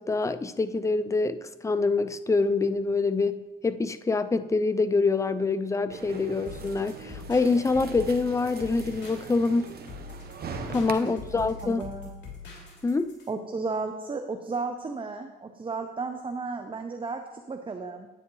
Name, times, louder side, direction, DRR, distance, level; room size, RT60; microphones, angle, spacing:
voice 1, 0.0-9.7 10.7-11.8 12.8-13.1, left 3 dB, 15° left, 12 dB, 0.4 m, -26 dB
sound 1, 5.9-10.9, right 5 dB, 50° right, 1.0 m, -41 dB
sound 2, 6.4-13.3, left 5 dB, 65° left, 3.2 m, -43 dB
voice 2, 11.0-12.1 13.3-17.2 17.5-18.1, right 4 dB, 25° right, 6 dB, 0.7 m, -34 dB
9.9 x 9.3 x 3.1 m, 1.1 s
cardioid pair, 90°, 20 cm